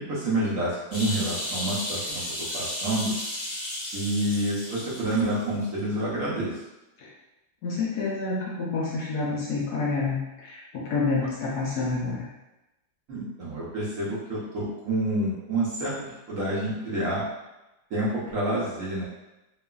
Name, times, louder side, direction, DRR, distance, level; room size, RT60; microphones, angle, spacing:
voice 1, 0.0-2.2 2.5-3.2 3.9-6.5 13.1-17.2 17.9-19.1, right 1 dB, 65° right, -8 dB, 0.9 m, -28 dB
sound 1, 0.9-5.4 5.8-5.9, left 1 dB, 20° left, 0.7 m, -33 dB
voice 2, 7.6-12.3, left 3 dB, 70° left, -5 dB, 1.0 m, -28 dB
2.9 x 2.3 x 2.2 m, 0.99 s
omnidirectional pair, 2.0 m